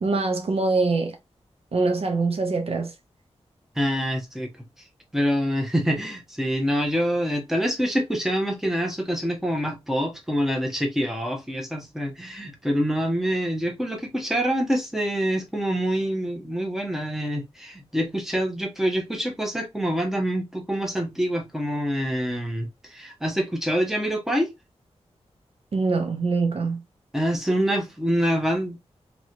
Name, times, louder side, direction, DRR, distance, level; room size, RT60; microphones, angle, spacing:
voice 1, 0.0-1.2 1.7-2.9 25.7-26.8, right 3 dB, 60° right, 0.7 m, -24 dB
voice 2, 3.8-4.5 5.1-24.5 27.1-28.8, equal, 5° right, 1.0 m, -26 dB
3.0 x 2.9 x 2.6 m
wide cardioid pair, 110°, 11 cm